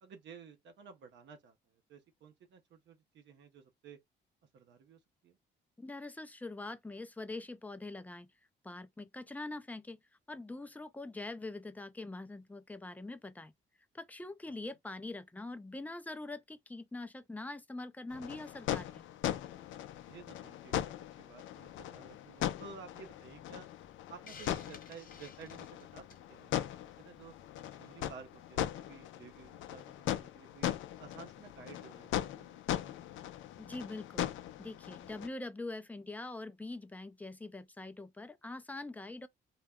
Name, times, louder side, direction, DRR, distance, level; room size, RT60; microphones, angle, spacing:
voice 1, 0.0-4.0 4.5-5.4 14.5-14.6 20.1-20.9 21.2-23.7 24.1-27.3 27.8-30.7 31.0-33.1, right 5 dB, 65° right, 0.6 m, -54 dB
voice 2, 5.8-8.3 8.6-10.0 10.3-13.5 13.9-19.0 33.6-34.3 34.6-39.3, left 2 dB, 10° left, 0.4 m, -44 dB
sound 1, 18.1-35.3, left 12 dB, 75° left, 0.4 m, -39 dB
Hiss, 24.3-26.3, left 5 dB, 45° left, 0.7 m, -53 dB
2.3 x 2.0 x 3.4 m
cardioid pair, 90°, 20 cm